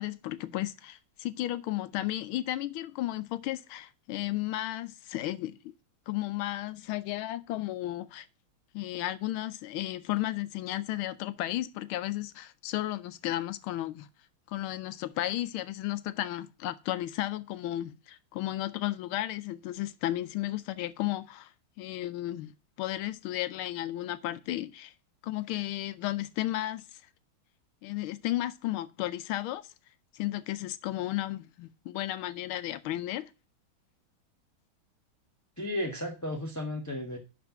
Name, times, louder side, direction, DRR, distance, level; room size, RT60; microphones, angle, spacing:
voice 1, 0.0-5.6 6.1-8.3 8.7-14.1 14.5-21.5 21.8-22.5 22.8-24.9 25.2-27.0 27.8-29.6 30.1-33.3, left 15 dB, 80° left, 1.4 m, -33 dB
voice 2, 35.6-37.2, left 1 dB, 10° left, 1.1 m, -34 dB
11.5 x 4.4 x 5.7 m
omnidirectional pair, 2.3 m